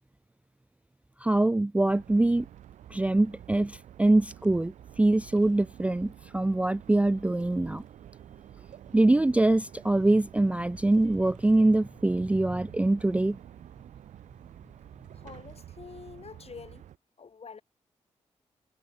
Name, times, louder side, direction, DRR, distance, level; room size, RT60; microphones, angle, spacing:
voice 1, 1.2-2.5 2.9-4.7 5.0-7.8 8.9-13.4, right 2 dB, 10° right, 0.3 m, -24 dB
sound 1, 1.9-17.0, right 11 dB, 90° right, 4.2 m, -49 dB
voice 2, 15.1-16.8 17.2-17.6, left 5 dB, 55° left, 4.7 m, -46 dB
supercardioid pair, 50°, 12 cm